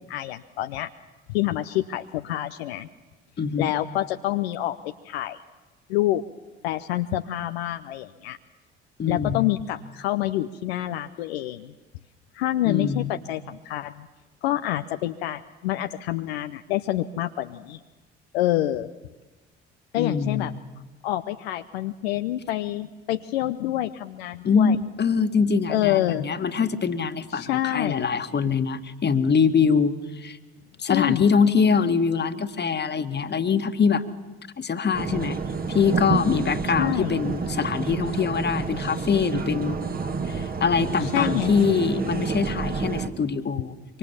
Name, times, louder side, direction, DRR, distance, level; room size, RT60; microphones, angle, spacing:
voice 1, 0.1-0.9 1.3-2.9 3.6-5.4 5.9-6.2 6.6-8.4 9.1-11.7 12.3-14.1 14.4-17.8 18.3-18.9 19.9-20.5 21.0-24.8 25.7-26.3 27.3-28.1 30.9-31.3 36.8-37.1 41.0-41.5, left 14 dB, 70° left, 7 dB, 0.8 m, -27 dB
voice 2, 3.4-3.7 9.0-9.6 12.6-13.1 19.9-20.6 24.4-30.4 30.8-34.0 34.6-35.4 35.7-39.9 40.3-44.0, left 6 dB, 30° left, 8 dB, 1.8 m, -23 dB
sound 1, 34.9-43.1, right 4 dB, 30° right, 1.7 m, -29 dB
25.0 x 24.5 x 7.2 m, 1.2 s
figure-of-eight pair, 50°, 32 cm